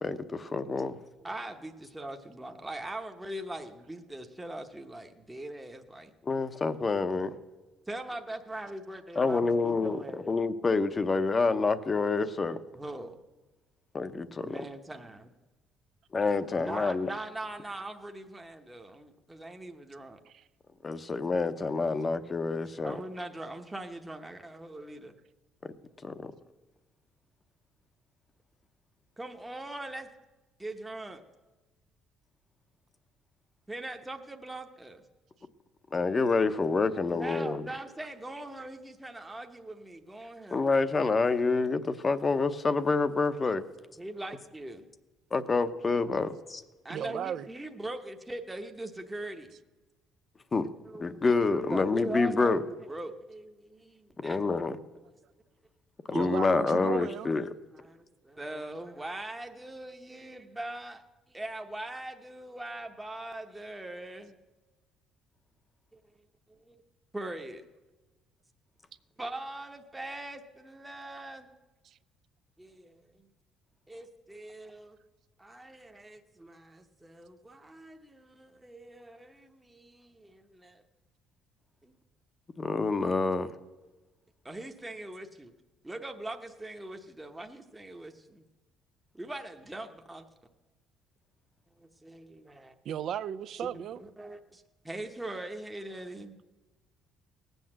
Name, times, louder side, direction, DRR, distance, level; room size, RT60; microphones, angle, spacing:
voice 1, 0.0-1.0 6.2-7.3 9.2-12.6 13.9-14.6 16.1-17.1 20.8-23.0 26.0-26.3 35.9-37.7 40.5-43.6 45.3-46.6 50.5-50.7 51.0-52.6 54.2-54.8 56.1-57.5 82.6-83.5, left 3 dB, 25° left, 0.7 m, -27 dB
voice 2, 1.2-6.1 7.9-10.3 12.7-13.2 14.4-15.3 16.6-20.2 22.8-25.1 29.2-30.1 30.6-31.2 33.7-35.0 37.1-40.7 44.0-44.9 46.8-49.5 50.8-51.4 51.7-54.4 57.7-61.0 61.3-64.3 65.9-66.0 66.5-66.8 67.1-67.7 69.2-71.5 72.6-73.3 73.9-75.0 75.4-80.8 81.8-81.9 84.4-85.5 85.8-88.4 89.1-90.2 91.8-92.7 93.6-93.7 94.0-96.4, right 1 dB, 10° right, 0.9 m, -41 dB
voice 3, 46.9-47.5 56.1-57.3 71.8-72.0 92.8-94.0, right 9 dB, 55° right, 0.5 m, -35 dB
18.5 x 8.0 x 7.5 m
cardioid pair, 125°, 0 cm